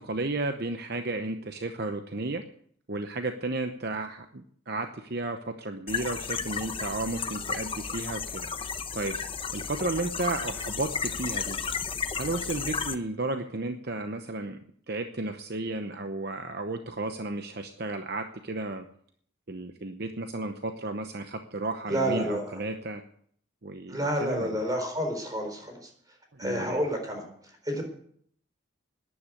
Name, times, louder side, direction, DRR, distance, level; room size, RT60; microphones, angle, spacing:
voice 1, 0.0-2.4 2.9-9.2 9.5-11.6 12.2-14.6 14.9-18.8 19.5-23.0 23.6-24.6 26.3-26.8, right 2 dB, 50° right, 7 dB, 0.9 m, -33 dB
sound 1, 5.9-12.9, left 6 dB, 25° left, 0.8 m, -33 dB
voice 2, 21.9-22.6 23.9-25.9 26.4-27.3 27.6-27.8, equal, 20° right, 3 dB, 4.1 m, -29 dB
11.5 x 10.5 x 8.4 m, 0.63 s
head